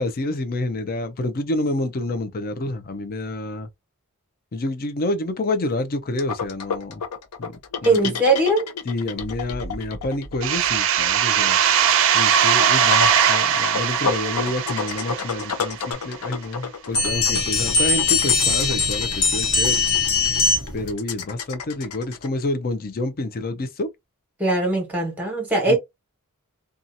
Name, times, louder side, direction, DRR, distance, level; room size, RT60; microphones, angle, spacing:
voice 1, 0.0-3.7 4.5-7.0 7.4-8.2 8.9-19.8 20.7-23.9 25.7-25.8, left 2 dB, 45° left, 0.5 m, -28 dB
sound 1, 6.2-22.3, left 5 dB, 85° left, 0.6 m, -31 dB
voice 2, 7.8-8.7 24.4-25.8, right 2 dB, 5° right, 1.2 m, -20 dB
sound 2, 10.4-15.9, right 8 dB, 60° right, 0.4 m, -20 dB
sound 3, 16.9-20.9, left 4 dB, 65° left, 1.1 m, -21 dB
2.7 x 2.3 x 2.6 m
head